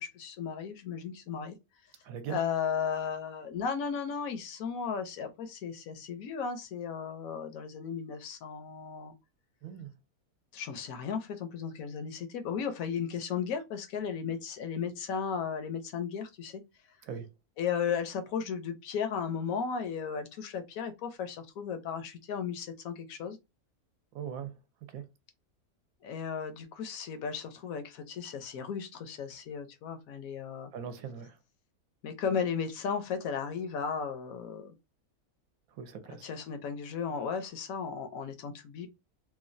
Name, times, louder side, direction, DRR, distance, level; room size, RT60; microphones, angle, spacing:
voice 1, 0.0-1.6 2.3-9.1 10.5-16.6 17.6-23.4 26.0-30.7 32.0-34.7 36.1-38.9, left 6 dB, 70° left, 1.0 m, -35 dB
voice 2, 2.0-2.4 9.6-9.9 17.1-17.3 24.1-24.5 24.9-25.0 30.7-31.4 35.8-36.3, right 7 dB, 70° right, 1.0 m, -40 dB
3.0 x 2.2 x 2.5 m
omnidirectional pair, 1.6 m